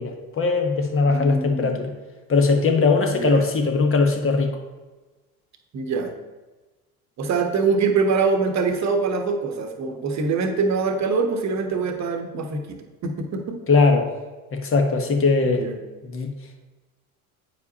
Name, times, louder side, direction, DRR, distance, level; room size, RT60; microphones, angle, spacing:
voice 1, 0.0-1.9 2.3-4.5 13.7-14.1 14.5-15.6 16.0-16.3, left 4 dB, 30° left, 4 dB, 1.1 m, -20 dB
voice 2, 1.1-1.8 3.1-3.5 5.7-6.1 7.2-13.6 15.4-15.8, right 4 dB, 40° right, 5 dB, 1.1 m, -24 dB
8.4 x 4.7 x 2.8 m, 1.2 s
hypercardioid pair, 75°, 43 cm